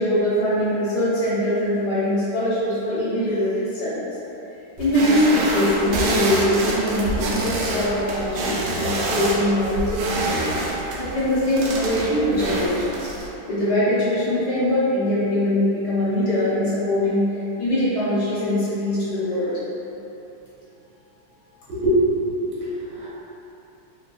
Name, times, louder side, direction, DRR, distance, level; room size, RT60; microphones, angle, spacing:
voice 1, 0.0-4.1 4.8-13.1 13.5-19.6, left 1 dB, 60° left, -11 dB, 1.5 m, -22 dB
sound 1, 4.8-13.3, right 2 dB, 90° right, 1.4 m, -26 dB
voice 2, 21.7-23.1, right 1 dB, 65° right, -9 dB, 1.8 m, -23 dB
4.3 x 3.9 x 2.4 m, 3.0 s
omnidirectional pair, 2.2 m